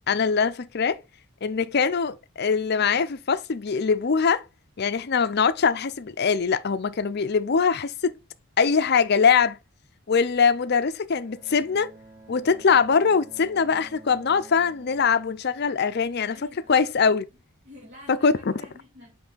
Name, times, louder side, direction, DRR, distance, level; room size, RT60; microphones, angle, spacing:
voice 1, 0.1-1.0 1.4-4.4 4.8-8.1 8.6-9.6 10.1-11.9 12.3-17.3 18.1-18.5, left 5 dB, 50° left, 0.5 m, -22 dB
Bowed string instrument, 11.2-16.2, right 2 dB, 15° right, 1.8 m, -50 dB
voice 2, 16.2-16.7 17.6-19.2, left 1 dB, 50° right, 2.6 m, -48 dB
6.0 x 5.3 x 3.9 m
head